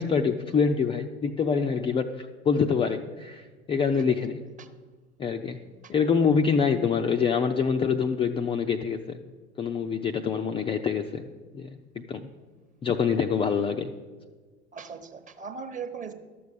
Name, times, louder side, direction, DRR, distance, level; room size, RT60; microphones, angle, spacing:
voice 1, 0.0-4.4 5.2-5.6 5.9-9.2 9.6-11.3 11.5-12.3 12.8-13.9, left 6 dB, 15° left, 4 dB, 0.4 m, -26 dB
voice 2, 14.7-16.1, right 6 dB, 20° right, 8 dB, 1.0 m, -39 dB
12.0 x 7.0 x 6.8 m, 1.4 s
figure-of-eight pair, 75°, 34 cm